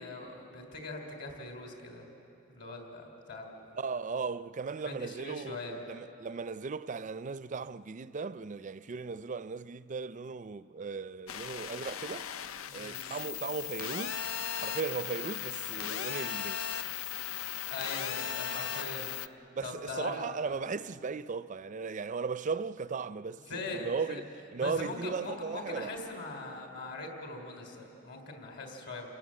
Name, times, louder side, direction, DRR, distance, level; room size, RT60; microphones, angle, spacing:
voice 1, 0.0-2.0 2.5-3.8 4.8-5.8 12.7-13.0 17.7-19.1 19.6-20.2 23.5-24.2 24.6-29.1, left 2 dB, 55° left, 3.7 m, -41 dB
voice 2, 3.8-12.3 12.7-14.2 14.5-16.6 19.5-24.2 24.5-25.9, right 5 dB, 35° right, 0.4 m, -37 dB
sound 1, 11.3-19.3, left 8 dB, 85° left, 0.6 m, -37 dB
29.0 x 18.0 x 7.6 m
head